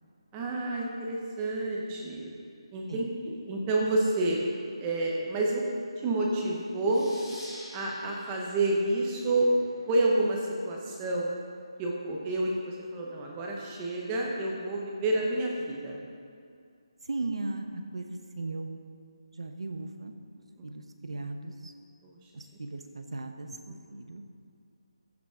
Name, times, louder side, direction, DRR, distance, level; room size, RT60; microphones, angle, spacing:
voice 1, 0.3-2.3 2.7-4.4 4.8-5.6 6.0-7.1 7.7-9.6 9.9-11.3 11.8-16.0 20.6-20.7 22.0-22.3 23.7-23.8, right 2 dB, 10° right, -2 dB, 0.8 m, -29 dB
sound 1, 6.8-10.1, equal, 5° left, 3.0 m, -49 dB
voice 2, 17.0-18.8 19.3-20.1 20.6-21.7 22.3-23.5 23.9-24.2, right 2 dB, 75° right, 6 dB, 1.0 m, -37 dB
15.0 x 5.9 x 5.0 m, 2.3 s
hypercardioid pair, 175°, 3 cm